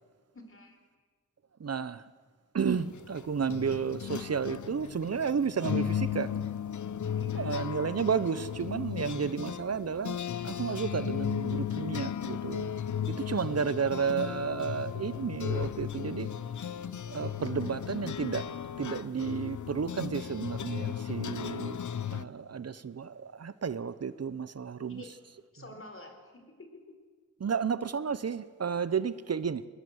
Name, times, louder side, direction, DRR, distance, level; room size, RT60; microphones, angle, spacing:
voice 1, 0.3-0.8 7.2-7.6 13.6-13.8 24.9-25.1 25.5-27.0, left 2 dB, 45° left, 4.2 m, -49 dB
voice 2, 1.6-2.0 2.5-6.3 7.3-10.2 10.4-12.7 13.2-16.3 17.1-18.5 18.8-21.8 22.1-25.0 27.4-29.6, right 6 dB, 55° right, 0.8 m, -32 dB
sound 1, 2.8-22.3, left 9 dB, 75° left, 0.8 m, -35 dB
21.0 x 19.5 x 8.0 m
wide cardioid pair, 65°, 30 cm